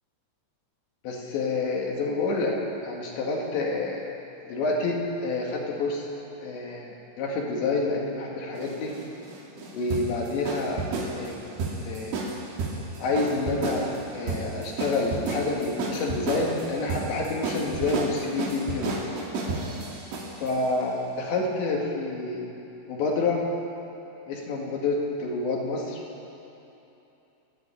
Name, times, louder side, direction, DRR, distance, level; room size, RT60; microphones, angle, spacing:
voice 1, 1.0-2.6 2.8-4.0 4.5-6.0 6.4-9.0 9.7-10.9 11.2-11.6 11.9-12.2 13.0-19.0 20.4-22.5 22.9-23.4 24.3-26.0, left 3 dB, 75° left, -2 dB, 4.3 m, -28 dB
sound 1, 8.6-20.6, right 3 dB, 75° right, 4.8 m, -32 dB
29.5 x 9.8 x 9.0 m, 3.0 s
omnidirectional pair, 5.3 m